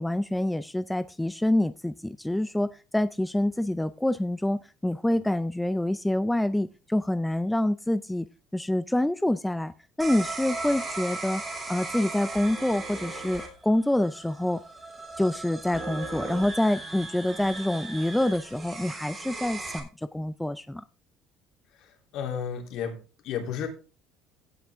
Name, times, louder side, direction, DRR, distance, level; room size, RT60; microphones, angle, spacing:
voice 1, 0.0-8.3 8.5-11.4 11.7-14.6 15.2-20.8, left 1 dB, 5° left, 13 dB, 0.4 m, -27 dB
sound 1, 10.0-19.8, right 3 dB, 20° right, 3.4 m, -37 dB
voice 2, 22.1-23.0 23.2-23.7, left 7 dB, 60° left, 3 dB, 3.2 m, -31 dB
16.5 x 5.9 x 3.6 m, 0.33 s
cardioid pair, 140°, 0 cm